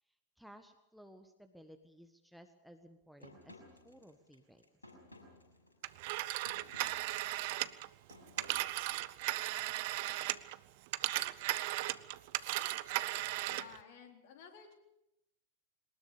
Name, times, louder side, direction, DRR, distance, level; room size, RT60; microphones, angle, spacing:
voice 1, 0.4-4.6, equal, ahead, 7 dB, 1.5 m, -57 dB
sound 1, 3.2-9.5, left 1 dB, 80° left, 5.9 m, -58 dB
Telephone, 5.8-10.6 10.9-13.8, right 18 dB, 50° right, 0.8 m, -36 dB
voice 2, 13.4-14.7, left 7 dB, 50° left, 4 dB, 4.0 m, -54 dB
22.5 x 20.0 x 6.8 m, 0.88 s
figure-of-eight pair, 90°, 0 cm